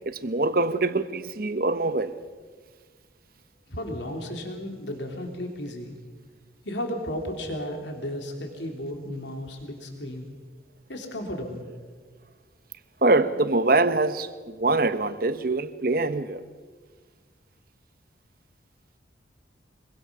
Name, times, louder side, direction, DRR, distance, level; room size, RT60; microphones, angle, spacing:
voice 1, 0.0-2.1 13.0-16.4, right 2 dB, 50° right, 0.9 m, -24 dB
voice 2, 3.7-6.0 6.6-10.3 10.9-11.7, left 1 dB, 75° left, 3.1 m, -34 dB
24.5 x 23.0 x 6.1 m
head